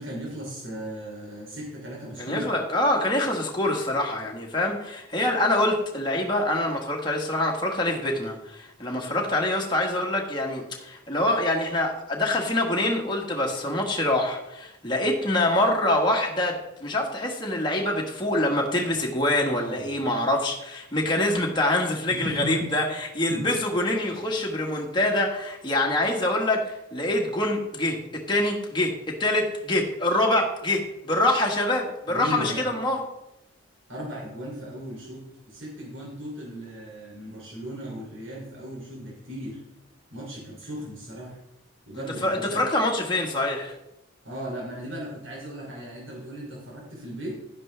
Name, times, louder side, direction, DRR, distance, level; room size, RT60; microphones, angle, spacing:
voice 1, 0.0-2.5 19.5-20.0 22.1-22.7 23.3-23.4 24.1-24.2 32.1-32.7 33.9-39.6 40.1-41.4 41.9-42.6 44.2-47.4, equal, 65° right, -3 dB, 2.9 m, -36 dB
voice 2, 2.2-33.0 42.2-43.7, left 1 dB, 20° left, 0 dB, 1.5 m, -25 dB
11.0 x 10.5 x 3.4 m, 0.88 s
head